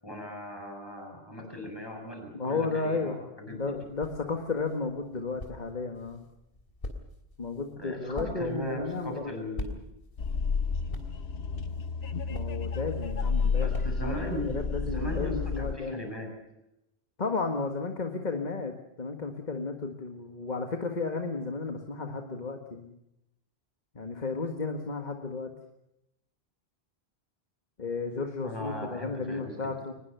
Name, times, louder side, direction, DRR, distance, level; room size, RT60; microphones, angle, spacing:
voice 1, 0.0-3.6 7.8-9.8 13.6-16.3 28.4-29.7, left 1 dB, 25° left, 2 dB, 7.2 m, -38 dB
voice 2, 2.3-6.2 7.4-9.3 12.3-13.7 14.0-16.0 17.2-22.9 24.0-25.5 27.8-29.9, left 4 dB, 45° left, 5 dB, 1.9 m, -33 dB
sound 1, 3.4-14.4, left 1 dB, 60° left, 3.5 m, -45 dB
sound 2, 10.2-15.7, left 5 dB, 80° left, 1.3 m, -31 dB
23.0 x 21.0 x 6.9 m, 0.85 s
omnidirectional pair, 1.1 m